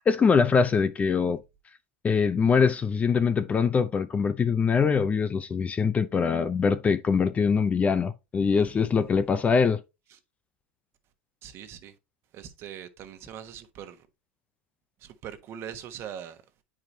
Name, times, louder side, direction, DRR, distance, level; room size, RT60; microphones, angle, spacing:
voice 1, 0.1-1.4 2.0-9.8, left 5 dB, 25° left, 0.5 m, -23 dB
voice 2, 8.5-8.8 10.1-10.2 11.4-11.9 12.3-14.1 15.0-16.4, right 9 dB, 45° right, 1.2 m, -42 dB
8.8 x 4.8 x 2.7 m
hypercardioid pair, 105°, 6 cm